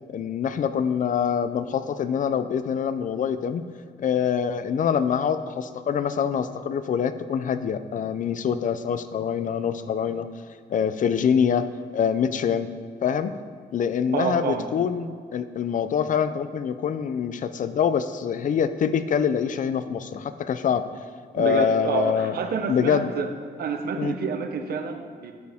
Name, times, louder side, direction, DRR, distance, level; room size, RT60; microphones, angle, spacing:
voice 1, 0.1-3.6 4.0-10.3 10.7-12.7 13.0-13.3 13.7-20.8 21.3-22.4 22.7-23.1 24.0-24.1, left 7 dB, 45° left, 12 dB, 0.5 m, -25 dB
voice 2, 14.1-14.7 21.4-23.3 23.6-25.3, right 5 dB, 60° right, 6 dB, 0.8 m, -28 dB
9.4 x 9.1 x 3.5 m, 2.1 s
cardioid pair, 140°, 18 cm